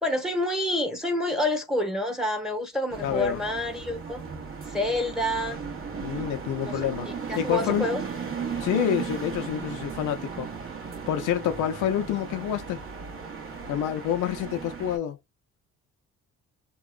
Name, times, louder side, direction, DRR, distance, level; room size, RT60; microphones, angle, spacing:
voice 1, 0.0-4.2 4.7-5.6 6.6-6.9 7.3-8.0, left 1 dB, ahead, 1.0 m, -28 dB
sound 1, 2.9-15.0, right 6 dB, 45° right, 1.3 m, -36 dB
voice 2, 3.0-3.4 6.0-7.1 7.4-7.9 8.6-10.5 11.1-12.8 13.7-15.2, left 10 dB, 85° left, 0.6 m, -27 dB
2.9 x 2.3 x 2.3 m
cardioid pair, 90°, 30 cm